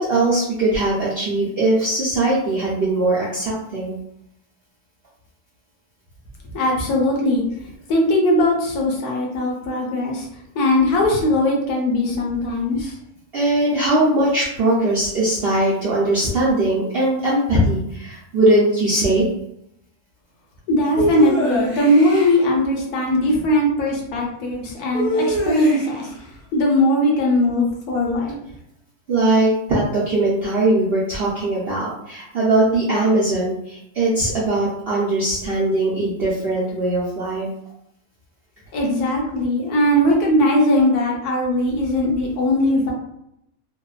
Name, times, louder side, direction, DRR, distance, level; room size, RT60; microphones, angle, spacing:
voice 1, 0.0-3.9 13.3-19.3 29.1-37.5, right 2 dB, 65° right, -7 dB, 0.6 m, -20 dB
voice 2, 6.5-7.4 7.9-10.3 10.6-12.9 20.7-26.1 26.5-28.4 38.7-42.9, left 1 dB, 80° left, -1 dB, 1.2 m, -19 dB
sound 1, 21.0-22.3 24.9-26.1, equal, 60° left, 0.4 m, -23 dB
2.9 x 2.1 x 2.3 m, 0.78 s
omnidirectional pair, 1.6 m